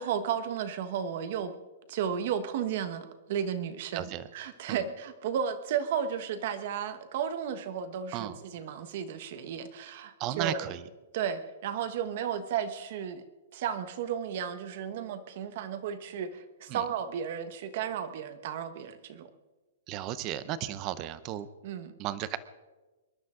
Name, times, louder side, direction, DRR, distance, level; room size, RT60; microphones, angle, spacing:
voice 1, 0.0-1.5 1.9-10.7 11.1-13.2 13.5-19.3 21.6-21.9, right 8 dB, 40° right, 11 dB, 1.2 m, -33 dB
voice 2, 10.2-10.9 16.7-16.8 19.9-21.5 22.0-22.4, right 12 dB, 20° right, 15 dB, 0.6 m, -34 dB
26.5 x 12.0 x 3.8 m, 1.2 s
hypercardioid pair, 175°, 0 cm